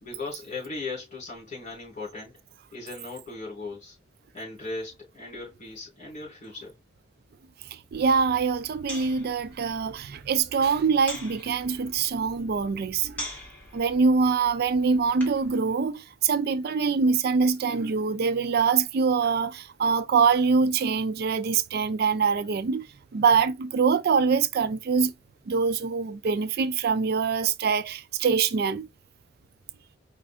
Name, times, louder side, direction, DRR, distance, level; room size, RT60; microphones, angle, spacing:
voice 1, 0.0-2.3 2.7-3.9 4.3-6.7, left 3 dB, 40° left, 3.4 m, -38 dB
sound 1, 7.9-15.5, left 1 dB, 10° left, 1.9 m, -44 dB
voice 2, 7.9-13.2 13.7-22.9 23.1-25.1 25.5-28.9, right 5 dB, 55° right, 0.4 m, -24 dB
5.0 x 2.5 x 3.5 m
head